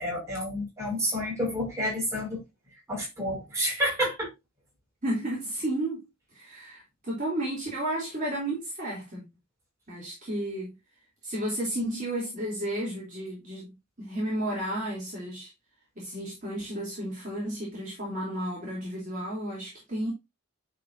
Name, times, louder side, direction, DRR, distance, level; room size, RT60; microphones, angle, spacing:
voice 1, 0.0-2.4 2.9-4.3, equal, 15° right, 6.1 m, -29 dB
voice 2, 5.0-6.0 6.3-9.2 9.9-10.7 11.2-15.5 16.0-20.1, right 1 dB, 35° right, 3.7 m, -32 dB
11.0 x 5.1 x 2.9 m
head